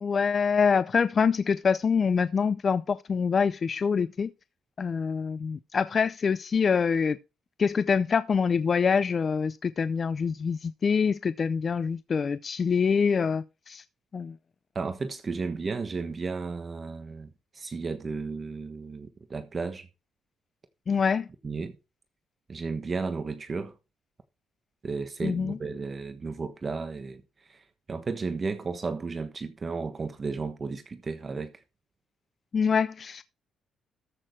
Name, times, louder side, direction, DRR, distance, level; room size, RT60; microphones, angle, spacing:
voice 1, 0.0-4.3 4.8-7.2 7.6-13.8 14.1-14.3 20.9-21.3 25.2-25.6 32.5-33.2, left 6 dB, 45° left, 0.5 m, -25 dB
voice 2, 14.7-17.3 17.5-19.9 21.4-21.7 22.5-23.7 24.8-27.2 27.5-31.5, right 4 dB, 35° right, 1.3 m, -33 dB
13.5 x 6.4 x 4.5 m
cardioid pair, 90°, 0 cm